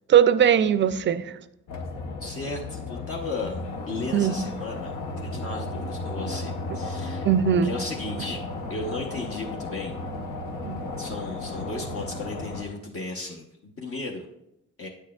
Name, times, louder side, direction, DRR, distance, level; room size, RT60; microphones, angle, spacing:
voice 1, 0.1-1.4 4.1-4.4 7.2-7.7 10.6-10.9, right 9 dB, 40° right, 14 dB, 0.4 m, -20 dB
sound 1, 1.7-12.6, left 2 dB, 80° left, 0.8 m, -34 dB
voice 2, 2.2-3.6 3.9-7.3 7.6-8.4 8.7-10.0 11.0-14.3 14.8-14.9, left 2 dB, 45° left, -1 dB, 0.9 m, -35 dB
8.6 x 6.4 x 2.3 m, 0.83 s
cardioid pair, 90°, 30 cm